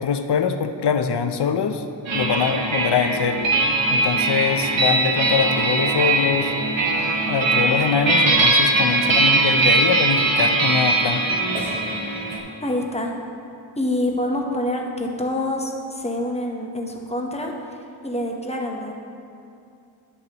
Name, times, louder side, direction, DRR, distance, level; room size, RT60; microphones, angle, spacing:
voice 1, 0.0-1.8 2.1-3.4 3.9-6.5 7.3-11.2, left 6 dB, 60° left, 7 dB, 0.6 m, -23 dB
sound 1, 2.1-12.4, right 2 dB, 70° right, 1.1 m, -20 dB
voice 2, 12.6-13.1 13.8-17.5 18.0-18.9, left 1 dB, 15° left, 1 dB, 0.8 m, -26 dB
10.5 x 6.8 x 2.9 m, 2.5 s
wide cardioid pair, 85°, 47 cm